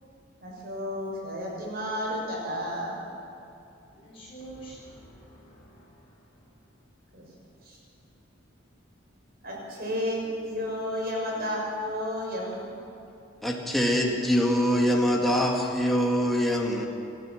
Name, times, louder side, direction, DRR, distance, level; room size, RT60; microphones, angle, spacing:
voice 1, 0.4-3.0 7.1-7.2 7.6-7.8 9.4-12.7, left 1 dB, 50° right, -2 dB, 6.5 m, -32 dB
voice 2, 3.9-6.8, right 2 dB, 30° left, -6 dB, 3.9 m, -48 dB
voice 3, 13.4-16.9, equal, ahead, -2 dB, 2.0 m, -24 dB
26.5 x 13.0 x 7.8 m, 2.7 s
head